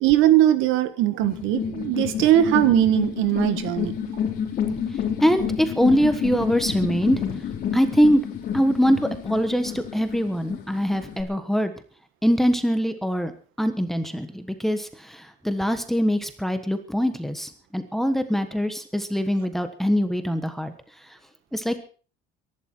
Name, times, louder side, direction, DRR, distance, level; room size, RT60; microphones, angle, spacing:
voice 1, 0.0-3.9, right 13 dB, 70° right, 12 dB, 1.7 m, -20 dB
sound 1, 1.2-11.2, left 8 dB, 45° left, 3.7 m, -29 dB
voice 2, 5.2-7.2 7.7-8.2 8.5-11.7 12.2-13.3 13.6-20.7 21.5-21.8, equal, ahead, 8 dB, 1.3 m, -23 dB
23.0 x 11.5 x 4.6 m, 0.40 s
cardioid pair, 160°, 21 cm